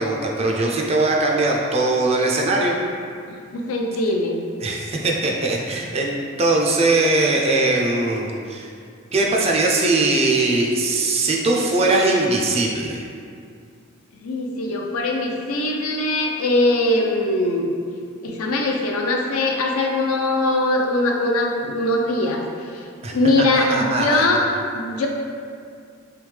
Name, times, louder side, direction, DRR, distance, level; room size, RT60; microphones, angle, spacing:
voice 1, 0.0-2.8 4.6-8.7 9.1-13.1 23.0-23.2 23.5-24.3, right 2 dB, 30° right, -1 dB, 0.4 m, -20 dB
voice 2, 3.3-4.4 14.2-17.7 18.2-22.9 23.1-24.4 24.7-25.1, left 2 dB, 85° left, 1 dB, 0.5 m, -21 dB
3.5 x 3.4 x 3.2 m, 2.3 s
head